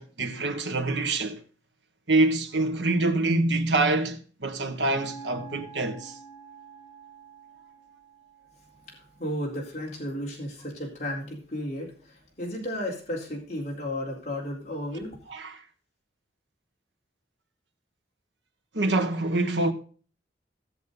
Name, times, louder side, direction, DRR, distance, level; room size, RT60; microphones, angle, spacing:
voice 1, 0.0-1.4 2.1-6.2 15.3-15.6 18.7-19.7, right 2 dB, 80° right, 1.7 m, -25 dB
sound 1, 4.9-9.1, right 5 dB, 15° left, 3.3 m, -46 dB
voice 2, 9.2-15.2, left 1 dB, 40° left, 4.0 m, -33 dB
17.0 x 7.5 x 3.9 m
head